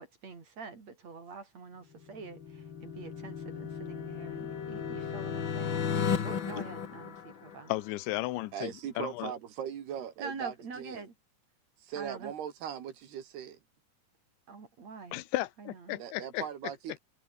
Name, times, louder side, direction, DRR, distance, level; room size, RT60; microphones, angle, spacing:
voice 1, 0.0-5.8 6.2-7.7 10.2-11.1 11.9-12.3 14.5-15.2 15.9-16.0, right 4 dB, 40° right, 5.1 m, -45 dB
sound 1, 2.0-7.9, left 7 dB, 50° left, 1.4 m, -35 dB
voice 2, 7.7-9.3 15.1-16.5, left 17 dB, 85° left, 3.3 m, -34 dB
voice 3, 8.5-11.0 11.8-13.6 16.0-17.0, right 9 dB, 65° right, 4.1 m, -39 dB
omnidirectional pair, 5.1 m